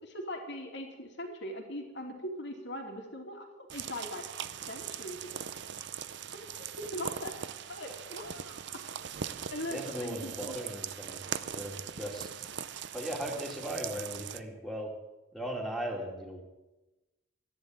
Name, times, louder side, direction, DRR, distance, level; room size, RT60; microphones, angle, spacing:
voice 1, 0.0-4.3 4.7-5.6 6.3-8.8 9.5-10.6, left 1 dB, 55° left, 2 dB, 2.8 m, -41 dB
sound 1, 3.7-14.4, right 8 dB, 55° right, 0.6 m, -40 dB
voice 2, 9.7-11.2 11.5-12.5 12.9-14.9 15.3-16.4, equal, ahead, 0 dB, 2.5 m, -38 dB
13.5 x 10.5 x 9.1 m, 1.1 s
head